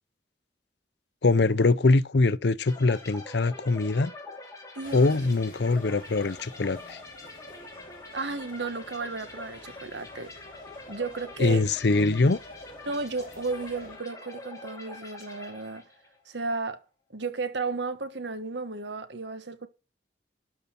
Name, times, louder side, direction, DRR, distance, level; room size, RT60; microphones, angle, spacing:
voice 1, 1.2-4.1 4.9-7.0 11.4-12.4, left 3 dB, 70° left, 0.6 m, -23 dB
sound 1, 2.7-16.2, left 2 dB, 20° left, 2.7 m, -45 dB
voice 2, 4.7-5.1 8.1-10.5 10.9-11.6 12.9-15.8 16.3-16.8 17.1-19.7, right 3 dB, 75° right, 1.4 m, -34 dB
sound 2, 4.8-14.0, left 2 dB, 50° left, 3.8 m, -50 dB
12.5 x 5.5 x 5.9 m
head